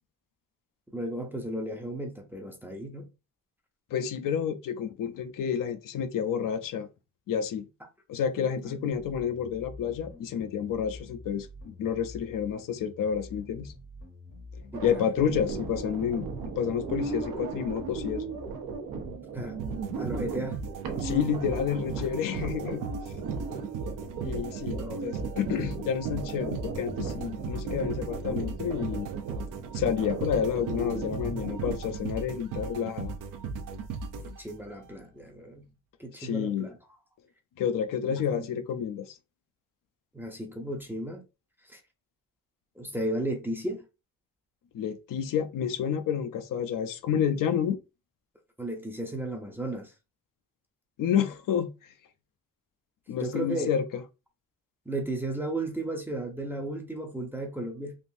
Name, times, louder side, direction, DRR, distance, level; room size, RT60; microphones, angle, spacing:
voice 1, 0.9-3.1 8.8-8.9 14.7-14.8 19.3-19.6 20.0-20.6 22.0-22.2 24.8-25.0 34.4-35.7 36.0-36.8 38.1-38.5 40.1-41.2 41.7-41.8 42.8-43.8 48.6-49.9 53.2-53.7 54.9-58.0, right 1 dB, 5° right, 0.5 m, -34 dB
voice 2, 3.9-6.9 7.3-7.7 8.1-13.7 14.8-18.3 21.0-22.9 24.2-29.1 29.7-33.1 36.2-36.7 37.6-39.1 44.7-47.8 51.0-51.7 53.1-54.0, left 8 dB, 70° left, 0.5 m, -29 dB
sound 1, 8.9-18.5, left 2 dB, 30° left, 0.7 m, -47 dB
sound 2, 14.7-31.8, right 4 dB, 85° right, 0.9 m, -37 dB
sound 3, 19.6-34.9, right 5 dB, 65° right, 0.5 m, -37 dB
3.6 x 2.5 x 2.5 m
cardioid pair, 155°, 34 cm